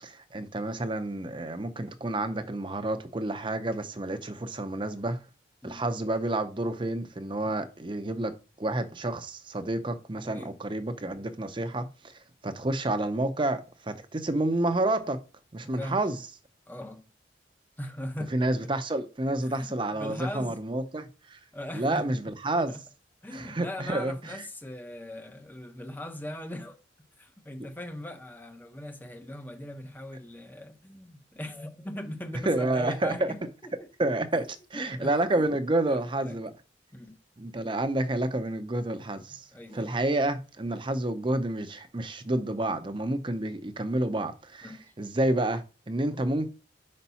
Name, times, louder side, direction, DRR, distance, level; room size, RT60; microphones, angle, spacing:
voice 1, 0.1-5.2 5.6-15.2 15.5-16.2 18.3-21.4 21.7-22.7 23.3-24.4 32.5-33.3 34.0-36.5 37.4-39.5 39.7-46.5, right 1 dB, 25° right, 0.6 m, -29 dB
voice 2, 15.6-16.0 16.7-17.0 17.8-18.4 18.6-18.7 19.4-20.6 21.5-22.8 23.2-26.8 27.2-33.4 34.7-35.5 35.9-36.4 36.9-37.5 39.3-40.0 44.6-44.9, left 1 dB, 10° left, 0.7 m, -40 dB
5.2 x 4.1 x 5.6 m
head